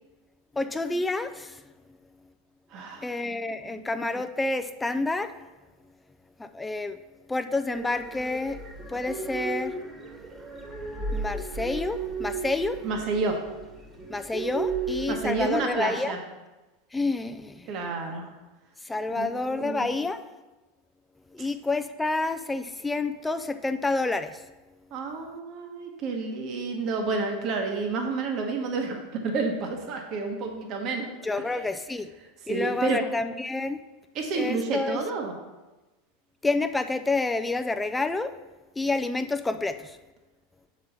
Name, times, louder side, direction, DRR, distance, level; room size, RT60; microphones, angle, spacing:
voice 1, 0.6-1.6 3.0-5.3 6.4-7.0 7.3-8.6 8.9-9.8 11.1-12.8 14.1-16.2 16.9-17.7 18.8-20.2 21.3-24.4 31.2-32.1 32.5-33.8 34.4-35.0 36.4-38.4 38.8-40.0, left 3 dB, 10° left, 9 dB, 0.4 m, -29 dB
voice 2, 2.7-3.0 3.6-3.7 12.8-13.4 15.1-16.2 17.7-18.3 19.1-19.9 21.4-21.5 24.9-31.1 31.5-31.6 32.5-33.0 34.1-35.3, right 3 dB, 45° right, 3 dB, 1.1 m, -30 dB
sound 1, 7.7-15.6, right 3 dB, 20° right, 1.3 m, -35 dB
6.6 x 5.2 x 5.5 m, 1.1 s
hypercardioid pair, 90°, 0 cm